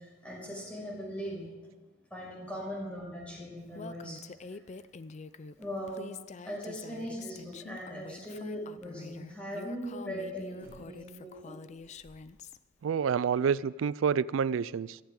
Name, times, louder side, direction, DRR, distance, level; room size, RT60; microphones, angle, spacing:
voice 1, 0.2-1.5 2.1-4.2 5.6-6.1 6.4-11.6, equal, 5° left, 5.7 m, -39 dB
Female speech woman speaking, 3.7-12.6, left 4 dB, 35° left, 0.4 m, -46 dB
sound 1, 10.6-11.3 11.7-12.5 12.9-13.0, equal, 15° right, 3.7 m, -57 dB
voice 2, 12.8-15.0, right 7 dB, 85° right, 0.4 m, -28 dB
16.5 x 14.5 x 3.8 m
head